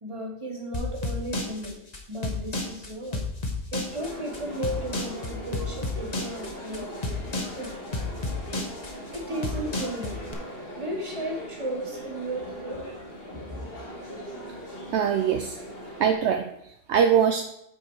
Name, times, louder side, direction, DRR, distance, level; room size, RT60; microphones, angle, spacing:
voice 1, 0.0-1.8 2.1-3.2 3.7-6.9 7.6-7.8 9.1-10.2 10.8-12.8 13.3-13.7, right 1 dB, 25° right, -1 dB, 1.7 m, -34 dB
sound 1, 0.7-10.3, left 2 dB, 35° left, 1.2 m, -31 dB
sound 2, 3.9-16.1, equal, 50° left, 2.3 m, -40 dB
voice 2, 14.9-15.6 16.0-17.5, right 8 dB, 70° right, 5 dB, 0.9 m, -23 dB
8.5 x 4.8 x 4.7 m, 0.78 s
omnidirectional pair, 1.3 m